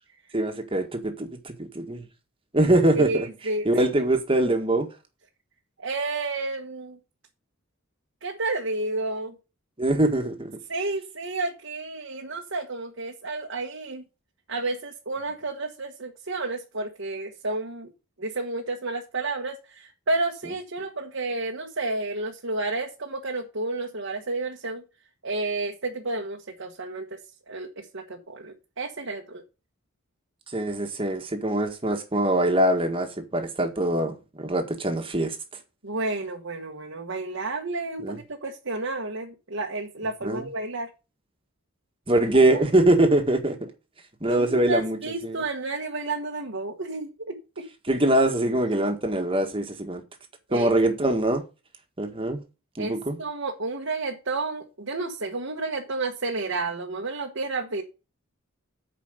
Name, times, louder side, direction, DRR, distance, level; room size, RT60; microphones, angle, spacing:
voice 1, 0.3-2.0 2.5-3.3 3.6-4.9 9.8-10.5 30.5-35.3 38.0-38.2 40.2-40.5 42.1-43.7 44.2-45.0 45.2-45.4 47.9-50.0 50.5-51.4 52.0-52.4 52.8-53.2, right 1 dB, 25° right, 1.6 m, -23 dB
voice 2, 2.9-4.1 5.8-7.0 8.2-9.3 10.7-14.0 14.5-17.9 18.2-24.8 25.2-27.2 27.5-29.4 35.8-40.9 42.3-42.5 44.3-47.7 50.5-50.7 52.8-57.8, right 3 dB, 65° right, 1.3 m, -31 dB
8.6 x 5.1 x 6.6 m
head